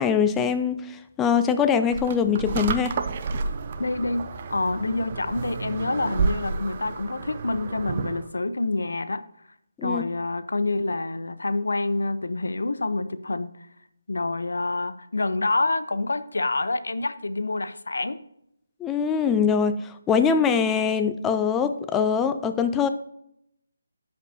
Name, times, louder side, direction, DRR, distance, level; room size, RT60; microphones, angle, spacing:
voice 1, 0.0-3.0 9.8-10.0 18.8-22.9, left 6 dB, 10° left, 9 dB, 0.4 m, -23 dB
sound 1, 1.9-8.3, right 5 dB, 35° right, 0.6 m, -30 dB
voice 2, 3.8-9.2 9.8-13.6 14.1-18.2, left 2 dB, 70° left, 12 dB, 0.7 m, -27 dB
13.0 x 5.2 x 2.7 m, 0.75 s
figure-of-eight pair, 150°, 0 cm